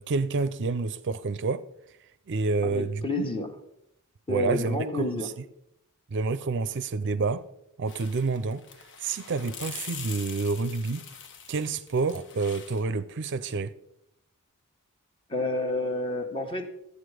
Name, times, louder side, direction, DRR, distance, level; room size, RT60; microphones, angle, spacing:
voice 1, 0.0-1.6 2.3-3.3 4.3-5.2 6.1-7.4 7.8-8.6 9.0-11.1 11.5-13.8, right 4 dB, 55° right, 0.5 m, -28 dB
voice 2, 2.6-3.5 4.3-5.3 15.3-16.7, left 2 dB, 25° left, 1.3 m, -29 dB
sound 1, 7.9-12.8, left 7 dB, 55° left, 1.0 m, -43 dB
12.5 x 8.3 x 4.9 m
head